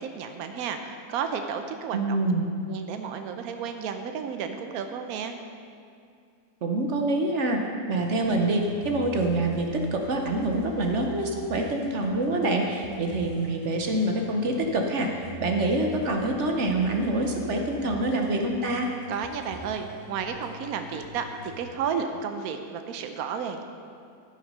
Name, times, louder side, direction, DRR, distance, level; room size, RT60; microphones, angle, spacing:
voice 1, 0.0-2.3 2.7-5.4 19.1-23.6, right 6 dB, 80° right, 6 dB, 1.1 m, -32 dB
voice 2, 1.9-2.6 6.6-7.6 7.9-15.1 15.4-18.9, right 2 dB, 60° right, 3 dB, 1.0 m, -26 dB
sound 1, 7.9-21.6, equal, 25° left, 1.3 m, -45 dB
13.0 x 5.9 x 5.4 m, 2.3 s
omnidirectional pair, 1.5 m